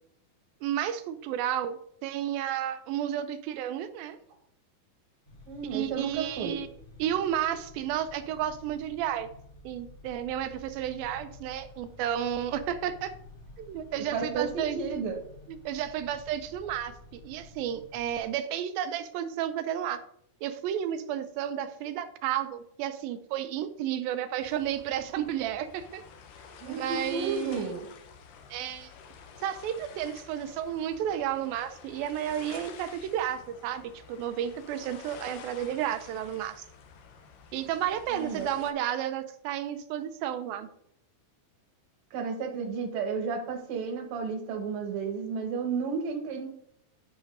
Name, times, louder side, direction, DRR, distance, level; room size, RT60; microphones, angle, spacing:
voice 1, 0.6-4.2 5.7-6.7 7.0-9.3 9.6-13.1 13.6-15.0 15.5-20.0 20.4-26.0 26.7-27.7 28.5-28.9 29.4-33.8 34.1-36.6 37.5-40.7, right 10 dB, 80° right, 10 dB, 2.3 m, -32 dB
sound 1, 5.3-18.2, left 2 dB, 45° left, 2.6 m, -51 dB
voice 2, 5.5-6.6 14.0-15.2 26.6-27.9 38.1-38.5 42.1-46.5, right 5 dB, 60° right, 3 dB, 2.1 m, -32 dB
sound 2, 24.4-38.7, left 6 dB, 75° left, 2.3 m, -50 dB
10.5 x 6.0 x 2.6 m, 0.69 s
omnidirectional pair, 4.2 m